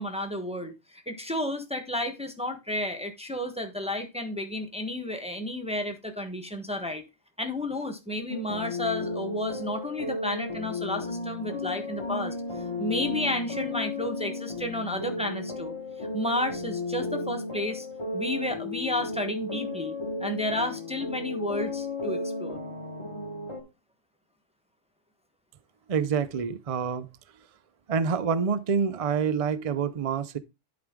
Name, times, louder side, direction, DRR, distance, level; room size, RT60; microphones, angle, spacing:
voice 1, 0.0-7.0 7.4-12.3 12.8-17.9 18.1-19.9 20.2-22.6, left 1 dB, 5° right, 1.1 m, -32 dB
sound 1, 8.3-23.6, left 2 dB, 25° left, 1.7 m, -34 dB
voice 2, 25.9-27.1 27.9-30.4, right 6 dB, 45° right, 0.5 m, -27 dB
11.0 x 4.9 x 3.6 m
omnidirectional pair, 1.3 m